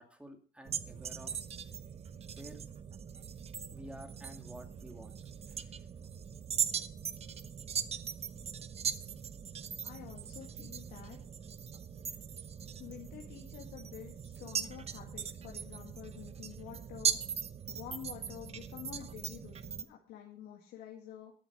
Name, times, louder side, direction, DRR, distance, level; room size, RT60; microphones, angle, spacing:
voice 1, 0.0-1.4 2.4-2.6 3.7-5.2 5.5-5.9, equal, 5° right, 5 dB, 2.4 m, -51 dB
sound 1, 0.7-19.8, right 7 dB, 40° right, 0.9 m, -40 dB
voice 2, 9.8-11.2 12.1-12.2 12.8-17.2 17.7-21.3, left 10 dB, 85° left, -1 dB, 2.1 m, -49 dB
12.0 x 8.8 x 6.1 m, 0.41 s
cardioid pair, 110°, 17 cm